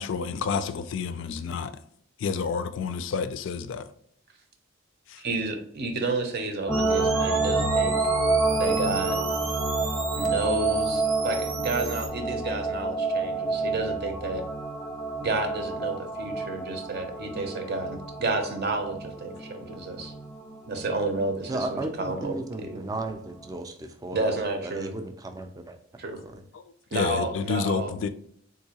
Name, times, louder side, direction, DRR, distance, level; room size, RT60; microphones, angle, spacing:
voice 1, 0.0-1.7 2.2-3.9 26.9-28.1, left 5 dB, 65° left, 0.3 m, -29 dB
voice 2, 5.2-8.0 8.6-9.2 10.2-14.4 15.2-20.1 20.7-22.8 24.1-24.9 26.0-26.2 26.9-28.1, right 2 dB, 50° right, 0.6 m, -31 dB
sound 1, 6.7-22.4 22.8-22.9, right 3 dB, 10° left, 0.7 m, -29 dB
sound 2, 6.7-12.1, right 6 dB, 90° right, 0.6 m, -36 dB
voice 3, 21.5-24.3 24.6-25.8 26.2-26.4, right 2 dB, 20° right, 0.3 m, -35 dB
3.7 x 2.7 x 2.8 m
head